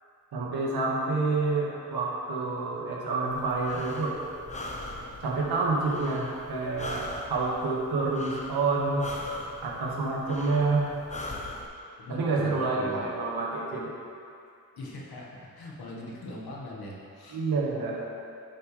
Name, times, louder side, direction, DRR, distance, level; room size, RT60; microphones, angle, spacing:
voice 1, 0.3-4.1 5.2-9.1 9.6-10.9 12.1-13.9 17.3-18.0, right 3 dB, 85° right, -4 dB, 1.8 m, -28 dB
Breathing, 3.3-11.7, left 1 dB, 20° left, 0.9 m, -40 dB
voice 2, 12.0-13.1 14.8-17.4, left 1 dB, 80° left, -3 dB, 1.7 m, -41 dB
10.5 x 7.7 x 3.4 m, 2.5 s
cardioid pair, 105°, 36 cm